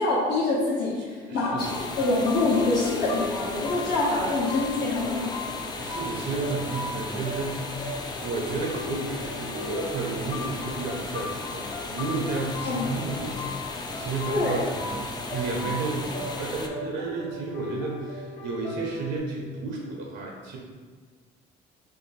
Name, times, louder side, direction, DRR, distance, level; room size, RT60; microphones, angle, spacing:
voice 1, 0.0-5.3 12.6-12.9 14.3-14.6, left 2 dB, 70° left, -9 dB, 1.0 m, -25 dB
voice 2, 1.0-1.8 5.3-20.6, right 3 dB, 80° right, -1 dB, 0.7 m, -32 dB
sound 1, 1.4-19.2, left 2 dB, 45° left, 1.0 m, -39 dB
sound 2, 1.6-16.7, left 3 dB, 25° left, 0.3 m, -36 dB
2.8 x 2.5 x 4.0 m, 1.5 s
cardioid pair, 110°, 17 cm